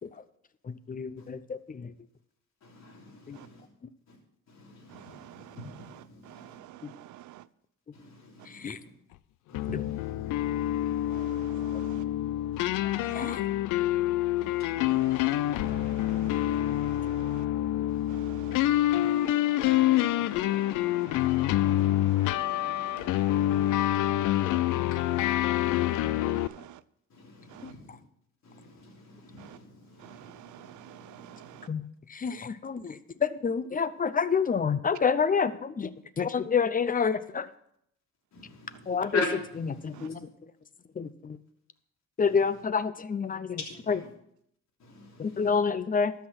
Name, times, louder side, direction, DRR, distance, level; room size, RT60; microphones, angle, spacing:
voice 1, 0.6-1.9 3.3-3.4 6.8-6.9 8.5-8.8 11.7-11.8 12.8-13.4 27.6-27.7 31.7-37.5 38.9-39.1 39.8-40.3 40.9-41.4 42.2-43.6 45.2-46.1, left 6 dB, 30° left, 0.7 m, -29 dB
voice 2, 2.6-3.7 4.1-4.2 4.5-6.6 7.9-8.9 9.5-11.9 12.5-13.6 14.4-16.5 17.9-18.6 27.1-28.0 28.4-31.7 38.3-40.2 42.2-42.6 43.6-44.1 44.8-45.6, left 3 dB, 65° left, 3.4 m, -43 dB
voice 3, 4.9-5.6 6.3-7.5 11.1-12.1 12.9-13.3 14.8-17.5 18.1-26.8 27.5-27.7 29.4-29.6 30.0-31.7 39.9-40.1, right 14 dB, 75° right, 0.5 m, -49 dB
sound 1, 9.5-26.5, left 14 dB, 90° left, 0.5 m, -27 dB
12.5 x 5.8 x 6.1 m
cardioid pair, 90°, 30 cm